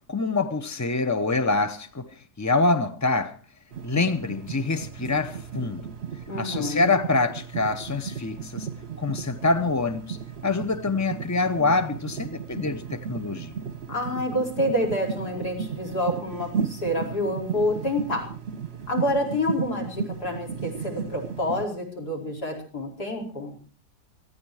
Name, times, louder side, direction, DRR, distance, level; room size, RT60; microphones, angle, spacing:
voice 1, 0.1-2.1 2.4-3.4 3.8-5.9 6.4-8.7 9.0-10.2 10.4-13.5, left 3 dB, 25° left, 9 dB, 0.3 m, -25 dB
sound 1, 3.7-21.7, right 7 dB, 45° right, 1.0 m, -35 dB
voice 2, 6.3-6.9 13.9-18.3 18.9-23.6, left 1 dB, 65° left, 3 dB, 5.4 m, -28 dB
19.0 x 14.0 x 4.8 m, 0.37 s
omnidirectional pair, 1.8 m